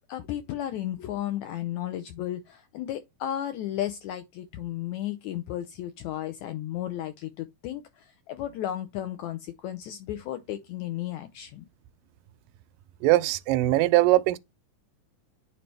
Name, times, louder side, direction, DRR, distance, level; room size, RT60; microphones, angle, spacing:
voice 1, 0.1-11.6, left 12 dB, 85° left, 1.7 m, -34 dB
voice 2, 13.0-14.4, right 16 dB, 85° right, 2.2 m, -21 dB
8.8 x 4.0 x 3.2 m
omnidirectional pair, 3.9 m